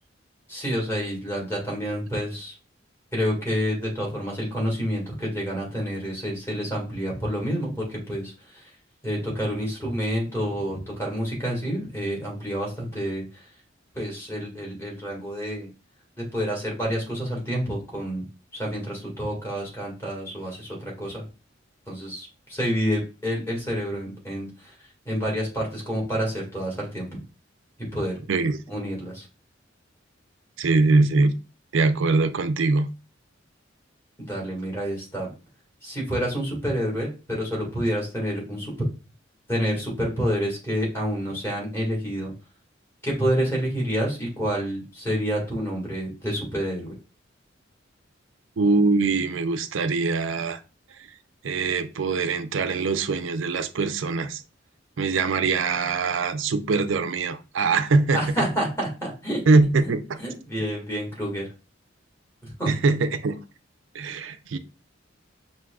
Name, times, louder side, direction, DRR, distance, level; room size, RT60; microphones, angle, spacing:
voice 1, 0.5-2.5 3.1-8.7 9.0-13.4 13.9-15.7 16.2-18.2 18.5-21.2 21.9-24.7 25.1-27.1 27.9-28.2 28.7-29.3 34.2-35.3 35.8-38.7 39.5-42.3 43.0-46.9 58.1-59.4 60.2-61.5 62.4-62.7, equal, 15° left, 1.8 m, -28 dB
voice 2, 30.6-31.3 31.7-32.9 48.6-50.6 51.0-51.1 51.4-54.4 55.0-58.2 59.5-60.2 62.7-63.4 63.9-64.6, right 3 dB, 80° right, 0.5 m, -22 dB
5.9 x 2.8 x 2.3 m
head